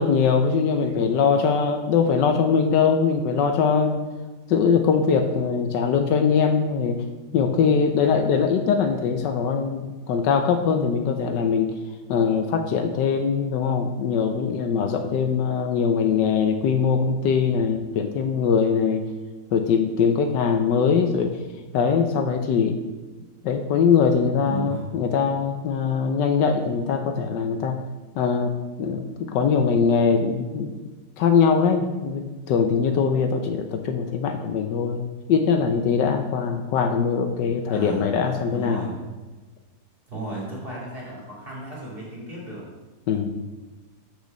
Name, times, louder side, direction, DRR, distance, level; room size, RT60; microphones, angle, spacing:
voice 1, 0.0-4.0 4.5-7.0 7.3-11.7 12.1-19.0 19.5-21.3 21.7-22.7 23.4-27.8 28.2-28.5 28.8-30.7 31.2-35.0 35.3-38.8 43.1-43.4, left 6 dB, 75° left, 6 dB, 1.3 m, -22 dB
voice 2, 24.5-24.9 37.7-38.0 38.5-39.0 40.1-42.7, right 2 dB, 30° right, -5 dB, 2.6 m, -34 dB
6.5 x 5.1 x 6.5 m, 1.2 s
omnidirectional pair, 2.0 m